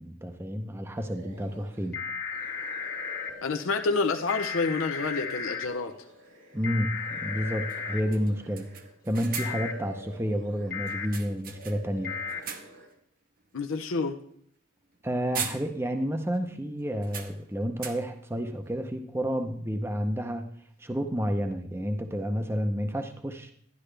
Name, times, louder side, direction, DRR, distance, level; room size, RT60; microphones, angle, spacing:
voice 1, 0.0-2.0 6.5-8.7 9.0-12.2 15.0-20.5 20.8-23.5, equal, 10° right, 6 dB, 0.6 m, -30 dB
sound 1, 0.9-1.9 2.3-8.9 9.2-11.2 11.4-12.9, equal, 75° right, 3.1 m, -49 dB
sound 2, 1.9-3.3 4.3-5.7 6.6-8.0 9.4-9.7 10.7-11.1 12.0-12.4, left 6 dB, 45° left, 1.2 m, -34 dB
voice 2, 3.4-5.9 13.5-14.2, left 4 dB, 80° left, 6 dB, 0.7 m, -28 dB
sound 3, 4.5-4.6 6.7-6.8 7.2-7.3 7.7-7.8 8.1-9.8 10.9-12.0 12.3-12.9 13.4-13.6 14.8-15.0 15.3-16.1 16.3-16.4 17.0-18.3, right 7 dB, 45° right, 0.8 m, -40 dB
12.0 x 11.0 x 3.3 m, 0.66 s
head